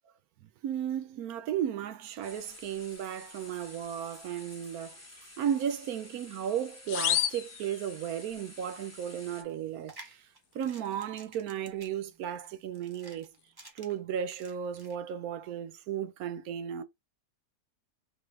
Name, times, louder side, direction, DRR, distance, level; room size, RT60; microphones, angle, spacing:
voice 1, 0.6-5.0 5.4-10.2 10.5-13.3 13.8-16.8, right 9 dB, 75° right, 1.1 m, -34 dB
sound 1, 2.2-9.4, left 2 dB, 15° left, 0.7 m, -51 dB
sound 2, 6.9-8.4, left 11 dB, 80° left, 1.1 m, -31 dB
sound 3, 9.7-14.9, right 2 dB, 20° right, 0.6 m, -53 dB
4.0 x 3.1 x 3.2 m
omnidirectional pair, 1.7 m